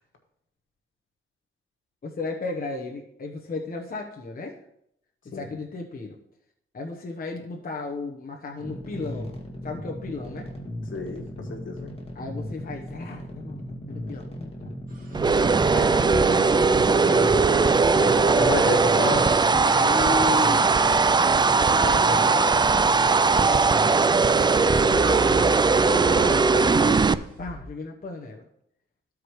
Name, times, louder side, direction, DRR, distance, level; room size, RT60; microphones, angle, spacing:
voice 1, 2.0-4.6 5.2-6.2 6.7-9.3 9.6-10.5 12.1-14.7 15.7-18.8 19.5-20.7 21.5-22.9 23.4-23.6 24.6-25.5 25.9-28.4, left 3 dB, 45° left, 0 dB, 1.1 m, -35 dB
sound 1, 8.6-26.3, equal, 30° left, 2.1 m, -38 dB
voice 2, 10.9-11.9 18.4-19.3 24.5-25.0, left 3 dB, 65° left, 3 dB, 1.7 m, -30 dB
sound 2, 14.9-19.0 22.3-27.6, left 1 dB, 40° right, 2.1 m, -40 dB
sound 3, 15.1-27.1, right 4 dB, 20° right, 0.3 m, -19 dB
14.5 x 4.9 x 3.2 m, 0.75 s
cardioid pair, 70°, 21 cm